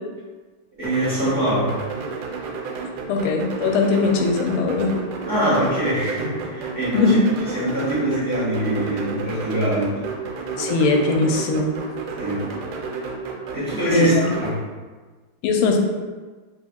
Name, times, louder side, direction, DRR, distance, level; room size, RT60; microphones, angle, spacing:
voice 1, 0.8-1.7 5.2-7.2 7.5-10.0 12.2-12.4 13.5-14.6, equal, 30° right, -11 dB, 1.2 m, -23 dB
sound 1, 0.8-14.5, right 4 dB, 85° right, 1.6 m, -31 dB
voice 2, 3.1-4.9 6.9-7.2 10.6-11.7 13.9-14.2 15.4-15.8, left 3 dB, 85° left, 2 dB, 1.5 m, -20 dB
6.3 x 3.2 x 2.3 m, 1.4 s
omnidirectional pair, 2.4 m